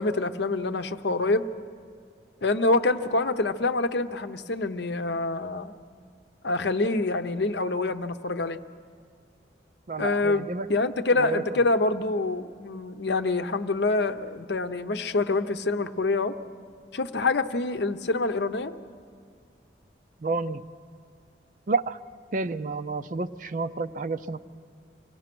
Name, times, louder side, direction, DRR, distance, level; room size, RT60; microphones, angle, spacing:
voice 1, 0.0-1.5 2.4-5.7 6.4-8.6 10.0-16.3 16.9-18.7, left 3 dB, 65° left, 9 dB, 0.7 m, -26 dB
voice 2, 9.9-10.7 11.2-11.4 20.2-20.7 21.7-22.0 22.3-24.4, right 3 dB, 45° right, 11 dB, 0.5 m, -30 dB
25.5 x 17.5 x 6.1 m, 2.2 s
head